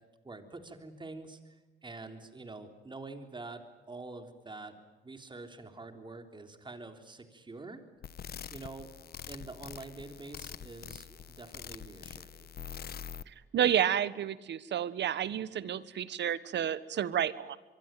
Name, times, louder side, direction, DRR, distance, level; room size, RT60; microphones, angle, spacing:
voice 1, 0.2-1.5 1.8-4.7 5.0-7.8 8.5-8.9 9.3-12.5, right 3 dB, 25° right, 7 dB, 3.6 m, -46 dB
sound 1, 8.0-13.2, left 8 dB, 50° left, 1.1 m, -45 dB
voice 2, 13.5-17.6, right 9 dB, 65° right, 17 dB, 1.3 m, -30 dB
24.5 x 23.5 x 9.2 m, 1.1 s
cardioid pair, 90°, 20 cm